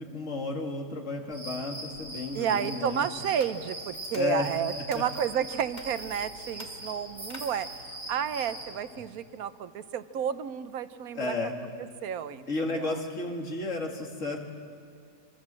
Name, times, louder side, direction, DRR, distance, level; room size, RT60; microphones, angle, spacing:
voice 1, 0.0-3.1 4.1-4.5 4.9-5.0 11.1-11.6 12.5-14.4, left 3 dB, 60° left, 2 dB, 2.6 m, -32 dB
sound 1, 1.3-8.7, right 1 dB, 55° right, 5.7 m, -41 dB
voice 2, 2.3-11.3 12.0-13.0, right 8 dB, 85° right, 12 dB, 1.3 m, -31 dB
sound 2, 3.4-5.2 5.7-6.1 6.5-7.9, left 2 dB, 30° left, 2.3 m, -49 dB
25.0 x 23.0 x 7.6 m, 2.3 s
omnidirectional pair, 1.5 m